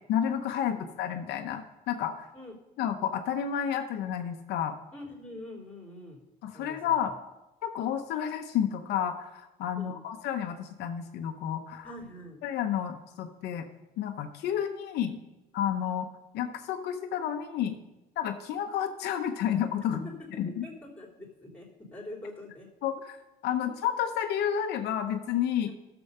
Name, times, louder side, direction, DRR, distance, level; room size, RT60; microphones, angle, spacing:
voice 1, 0.1-2.3 2.8-4.8 6.4-7.1 7.6-11.9 12.4-13.7 14.0-15.2 15.5-16.1 16.3-17.8 18.2-20.0 20.4-20.6 22.8-23.2 23.4-25.7, left 9 dB, 80° left, 6 dB, 0.8 m, -30 dB
voice 2, 4.9-6.2 6.5-6.9 9.7-10.0 11.8-12.4 20.0-20.1 20.4-21.7 21.9-22.7 23.5-23.6 25.6-25.7, left 1 dB, 10° left, -1 dB, 3.2 m, -44 dB
11.5 x 7.0 x 5.5 m, 1.0 s
cardioid pair, 110°, 17 cm